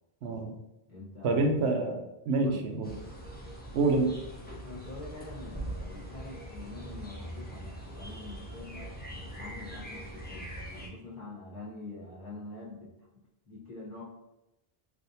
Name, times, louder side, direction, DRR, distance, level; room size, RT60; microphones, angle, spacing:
voice 1, 0.2-0.6 1.2-2.9 3.7-4.2, right 3 dB, 80° right, 4 dB, 0.8 m, -27 dB
voice 2, 0.9-1.6 2.4-2.7 4.6-9.0 9.2-10.5 10.8-12.9 13.4-14.0, left 2 dB, 50° left, -6 dB, 1.1 m, -45 dB
sound 1, 2.8-10.9, right 1 dB, 15° left, 0.4 m, -42 dB
3.5 x 2.5 x 2.6 m, 0.95 s
omnidirectional pair, 1.1 m